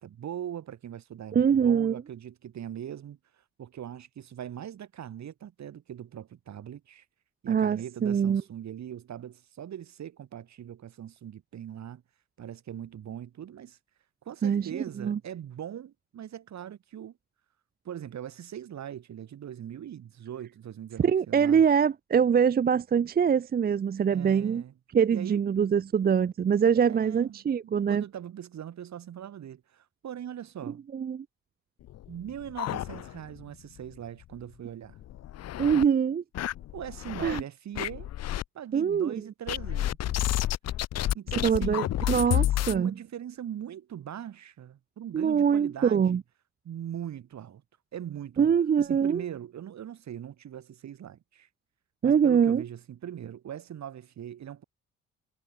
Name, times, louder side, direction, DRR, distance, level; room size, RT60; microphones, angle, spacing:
voice 1, 0.0-3.2 3.6-7.0 7.4-12.0 12.4-13.8 14.2-17.2 17.8-21.6 24.1-24.7 25.1-25.5 26.7-27.4 27.9-30.8 32.1-35.0 36.7-38.1 38.5-40.3 41.1-41.9 42.7-46.2 46.6-47.6 47.9-48.5 48.8-51.5 52.0-54.6, right 10 dB, 65° right, 6.2 m, -41 dB
voice 2, 1.3-2.0 7.5-8.4 14.4-15.2 21.0-24.6 24.9-28.0 30.9-31.2 35.6-36.2 37.2-37.4 38.7-39.1 41.4-42.9 45.1-46.2 48.4-49.2 52.0-52.6, right 7 dB, 30° right, 0.6 m, -24 dB
sound 1, 31.9-33.4 33.8-33.9 34.2-34.3 34.9-35.8 36.3-37.4 37.7-38.4 39.5-42.8, left 13 dB, 55° left, 0.6 m, -30 dB
cardioid pair, 90°, 30 cm